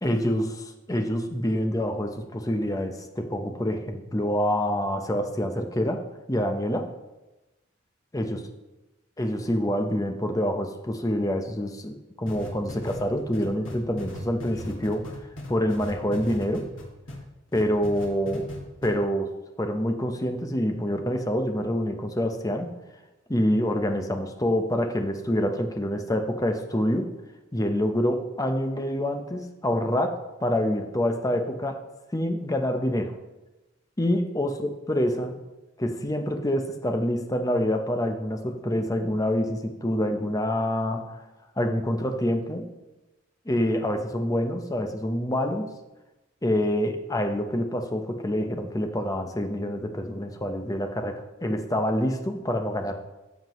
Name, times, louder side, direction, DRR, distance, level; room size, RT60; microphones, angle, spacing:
voice 1, 0.0-6.0 6.3-6.9 8.1-8.4 9.2-15.1 15.5-16.7 17.5-18.5 18.8-19.3 19.6-22.7 23.3-27.1 27.5-31.8 32.1-33.2 34.0-35.4 35.8-41.2 41.6-42.7 43.5-45.7 46.4-52.9, equal, 15° left, 5 dB, 0.7 m, -26 dB
sound 1, 12.3-17.2 17.5-18.6 18.8-18.9, left 1 dB, 80° left, 2.2 m, -38 dB
13.0 x 7.4 x 3.1 m, 1.0 s
head